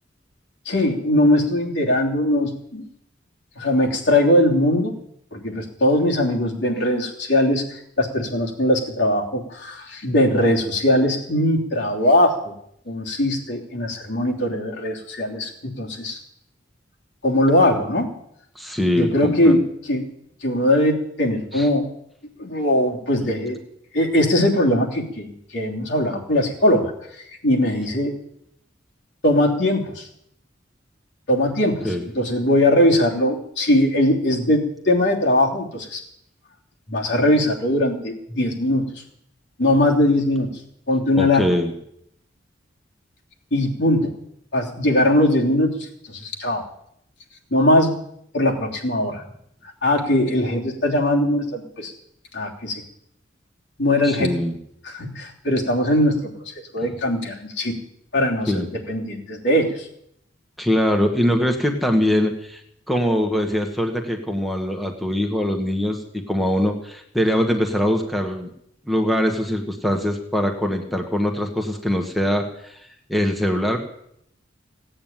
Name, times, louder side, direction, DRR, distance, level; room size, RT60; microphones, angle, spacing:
voice 1, 0.6-2.9 3.6-4.9 5.3-12.5 12.9-16.2 17.2-18.1 18.9-20.0 20.4-21.9 22.4-23.6 23.9-26.9 27.4-28.1 29.2-30.1 31.3-36.0 36.9-38.9 39.6-40.5 40.9-41.5 43.5-44.1 44.5-46.6 47.5-48.0 48.3-49.2 49.8-51.9 52.3-52.8 53.8-54.3 54.8-56.3 56.7-57.8 58.1-59.9, left 1 dB, 70° left, -1 dB, 3.2 m, -20 dB
voice 2, 18.5-19.6 21.5-21.7 31.8-32.1 41.2-41.7 54.0-54.6 58.5-58.7 60.6-62.6 62.9-68.5 68.9-72.8 73.1-73.8, equal, ahead, 2 dB, 1.5 m, -22 dB
17.0 x 8.9 x 9.3 m, 0.73 s
head